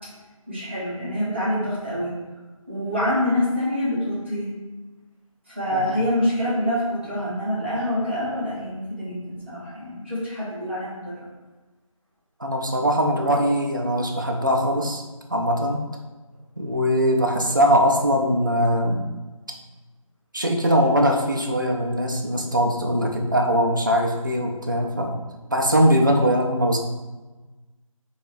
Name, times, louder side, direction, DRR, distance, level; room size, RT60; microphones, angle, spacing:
voice 1, 0.5-2.1 2.7-4.5 5.5-11.2, left 1 dB, 20° right, -9 dB, 0.7 m, -26 dB
voice 2, 5.7-6.0 12.4-15.0 15.3-15.8 16.6-19.1 20.3-25.2 25.5-26.8, equal, 35° right, 1 dB, 0.4 m, -21 dB
4.5 x 2.3 x 2.5 m, 1.2 s
figure-of-eight pair, 175°, 18 cm